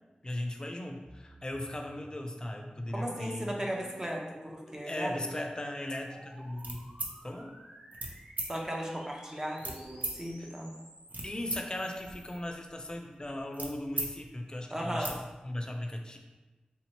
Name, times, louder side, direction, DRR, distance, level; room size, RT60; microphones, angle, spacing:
voice 1, 0.2-3.4 4.8-6.9 7.2-7.5 10.4-10.5 11.2-15.2 15.4-16.2, left 1 dB, 30° left, 3 dB, 0.4 m, -37 dB
sound 1, 1.0-12.4, equal, 55° right, 0.9 m, -54 dB
voice 2, 2.9-4.2 4.5-5.3 8.5-10.7 14.7-15.1, equal, 20° right, 0 dB, 0.6 m, -36 dB
sound 2, 6.6-7.1 7.9-8.1 8.4-8.5 9.6-10.2 10.8-11.6 11.9-14.1 14.4-14.5 14.8-15.2, right 2 dB, 70° right, 0.5 m, -38 dB
3.4 x 2.9 x 2.9 m, 1.2 s
wide cardioid pair, 70°, 3 cm